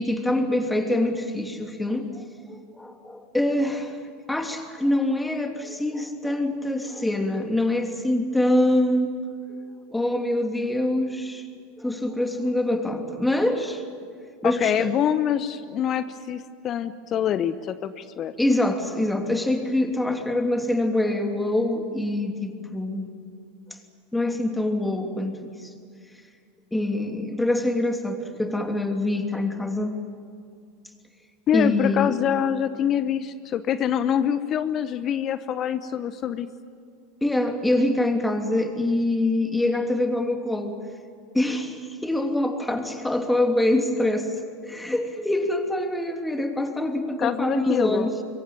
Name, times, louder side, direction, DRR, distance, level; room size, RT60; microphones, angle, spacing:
voice 1, 0.0-2.2 2.5-4.0 4.3-9.1 9.9-11.4 11.8-13.8 14.4-14.9 18.4-23.1 24.1-25.7 26.7-30.0 31.5-32.2 37.2-40.8 41.3-44.4 44.6-48.2, left 1 dB, 5° left, 4 dB, 3.0 m, -25 dB
voice 2, 14.4-18.3 31.5-36.5 47.2-48.1, left 9 dB, 40° left, 13 dB, 1.0 m, -25 dB
26.0 x 23.0 x 9.0 m, 2.2 s
figure-of-eight pair, 85°, 0 cm